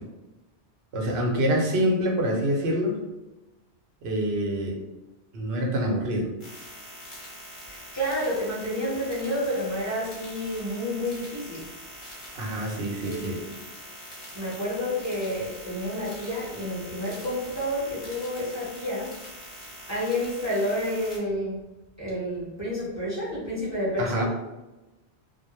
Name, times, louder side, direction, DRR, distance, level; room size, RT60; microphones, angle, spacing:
voice 1, 0.9-3.0 4.0-4.8 5.3-6.3 12.3-13.4 24.0-24.2, equal, 70° right, 0 dB, 0.8 m, -26 dB
sound 1, 6.4-21.2, equal, 35° left, 0.7 m, -43 dB
voice 2, 7.6-11.6 13.0-13.6 14.3-19.1 19.9-21.6 22.0-24.2, equal, 15° right, -7 dB, 0.7 m, -30 dB
2.1 x 2.0 x 2.9 m, 1.0 s
omnidirectional pair, 1.1 m